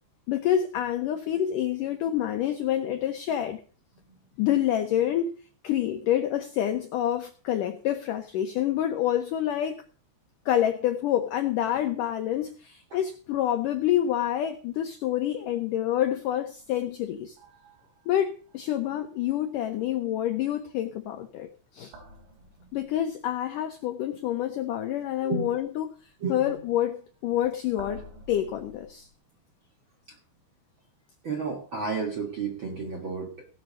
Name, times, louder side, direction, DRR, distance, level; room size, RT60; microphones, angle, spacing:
voice 1, 0.3-3.6 4.4-5.3 5.6-9.8 10.5-17.4 18.1-21.9 22.7-25.9 26.3-29.1, left 11 dB, 90° left, 7 dB, 1.8 m, -27 dB
sound 1, 16.5-19.9 21.7-23.3 26.7-29.1, equal, 85° right, 5.7 m, -51 dB
voice 2, 25.2-25.5 26.2-26.6 30.1-30.2 31.2-33.5, right 4 dB, 50° right, 1 dB, 1.4 m, -32 dB
17.5 x 6.0 x 6.4 m, 0.39 s
omnidirectional pair, 5.0 m